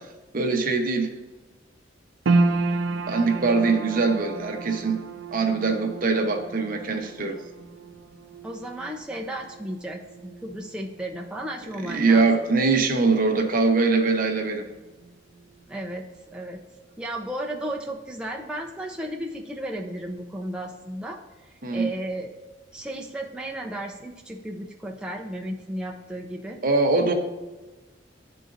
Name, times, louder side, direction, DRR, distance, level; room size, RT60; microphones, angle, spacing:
voice 1, 0.3-1.1 3.1-5.0 5.3-7.4 11.8-14.7 21.6-21.9 26.6-27.1, right 3 dB, 50° right, 4 dB, 0.8 m, -22 dB
sound 1, 2.3-14.7 14.9-15.9 16.3-16.4, right 3 dB, 85° right, 0.5 m, -32 dB
voice 2, 8.4-12.3 15.7-16.6 17.0-22.3 22.7-26.6, right 1 dB, 5° right, -1 dB, 0.5 m, -34 dB
11.5 x 3.9 x 2.5 m, 1.2 s
head